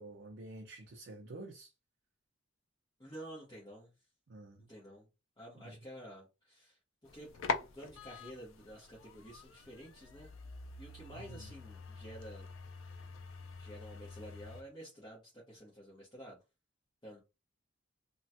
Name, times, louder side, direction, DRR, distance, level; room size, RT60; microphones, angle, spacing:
voice 1, 0.0-1.7 4.3-4.7 5.6-5.8 11.1-11.5, right 2 dB, 60° right, 0.5 m, -49 dB
voice 2, 3.0-3.9 4.7-5.1 5.4-6.8 7.1-7.3 7.6-10.3 10.8-12.5 12.7-13.1 13.6-16.4 17.0-17.2, equal, 20° left, 1.0 m, -51 dB
sound 1, 7.0-14.6, left 4 dB, 70° left, 0.4 m, -44 dB
3.1 x 2.2 x 2.8 m
head